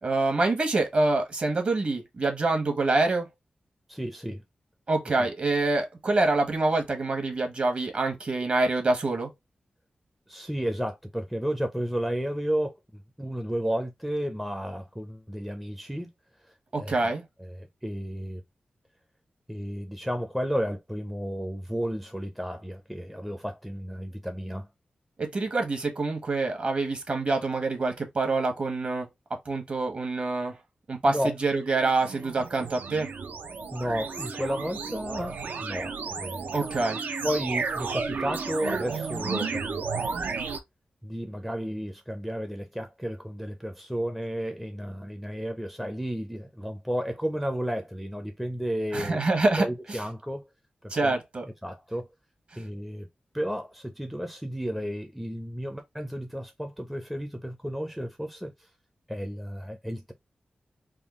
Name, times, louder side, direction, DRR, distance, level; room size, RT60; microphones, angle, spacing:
voice 1, 0.0-3.3 4.9-9.3 16.7-17.2 25.2-29.1 29.5-30.6 30.9-33.1 36.5-37.0 48.9-50.0 50.9-51.4, right 2 dB, 45° right, 1.1 m, -26 dB
voice 2, 3.9-4.4 10.3-16.1 16.8-17.0 17.4-18.4 19.5-24.7 31.1-31.3 33.7-36.5 37.2-40.0 41.0-49.2 49.6-50.5 50.8-51.2 51.6-52.1 52.6-53.1 53.3-58.5 59.1-60.1, equal, ahead, 0.5 m, -32 dB
sound 1, 31.6-40.6, right 5 dB, 75° right, 0.6 m, -33 dB
3.6 x 2.2 x 3.5 m
wide cardioid pair, 150°, 3 cm